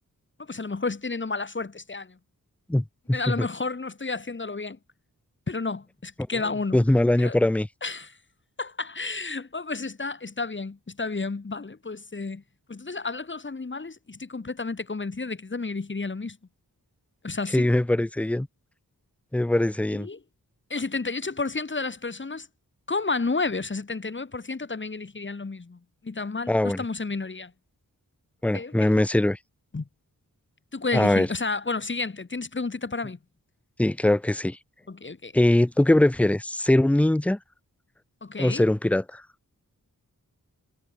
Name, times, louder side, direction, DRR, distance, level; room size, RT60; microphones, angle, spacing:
voice 1, 0.4-2.2 3.1-4.8 5.5-6.8 7.2-7.4 7.8-8.2 8.6-12.4 12.7-16.4 17.2-17.7 19.9-20.2 20.7-22.5 22.9-27.5 28.5-28.9 29.7-29.9 30.7-33.2 34.9-35.3 38.2-38.6, left 3 dB, 35° left, 1.6 m, -31 dB
voice 2, 2.7-3.5 6.7-7.7 17.5-18.5 19.3-20.1 26.5-26.8 28.4-29.4 30.9-31.3 33.8-34.6 35.3-37.4 38.4-39.2, left 1 dB, 5° left, 0.5 m, -22 dB
wide cardioid pair, 95°, 34 cm